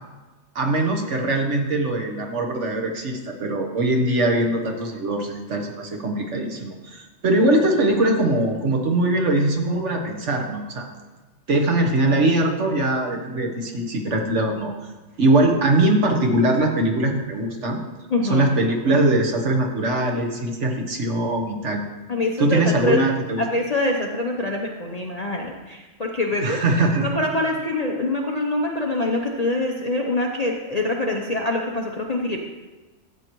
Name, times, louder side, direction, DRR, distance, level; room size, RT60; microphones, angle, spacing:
voice 1, 0.5-10.9 11.5-14.7 15.2-17.8 18.2-21.8 22.4-23.4 26.4-27.1, right 2 dB, 60° right, 2 dB, 1.4 m, -21 dB
voice 2, 18.1-18.5 22.1-23.0 23.4-26.6 27.0-32.4, left 2 dB, 40° left, 0 dB, 0.6 m, -24 dB
13.0 x 8.1 x 3.0 m, 1.2 s
omnidirectional pair, 1.4 m